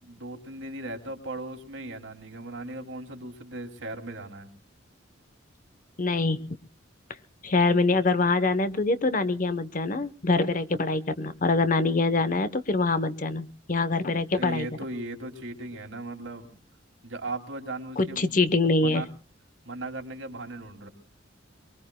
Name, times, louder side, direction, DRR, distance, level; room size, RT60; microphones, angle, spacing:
voice 1, 0.0-4.5 14.4-16.5 17.0-18.4 18.8-19.1 19.7-20.9, right 2 dB, 85° right, 3 dB, 2.6 m, -37 dB
voice 2, 6.0-6.6 7.4-14.7 18.0-19.1, left 3 dB, 40° left, 13 dB, 0.8 m, -24 dB
24.0 x 22.5 x 2.2 m, 0.40 s
head